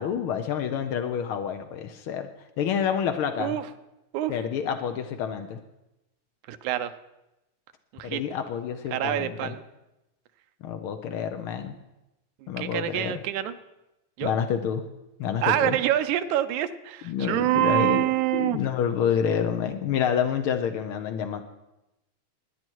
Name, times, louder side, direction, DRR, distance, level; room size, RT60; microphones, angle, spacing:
voice 1, 0.0-2.3 2.6-3.6 4.3-5.6 8.0-9.5 10.6-11.7 12.5-13.2 14.2-14.8 15.2-15.8 17.0-21.4, left 8 dB, 90° left, 6 dB, 1.1 m, -28 dB
voice 2, 6.5-6.9 7.9-8.2 8.9-9.7 12.4-13.5 14.2-14.3 15.4-18.6, right 13 dB, 80° right, 11 dB, 2.1 m, -26 dB
18.5 x 9.9 x 4.6 m, 0.94 s
omnidirectional pair, 3.4 m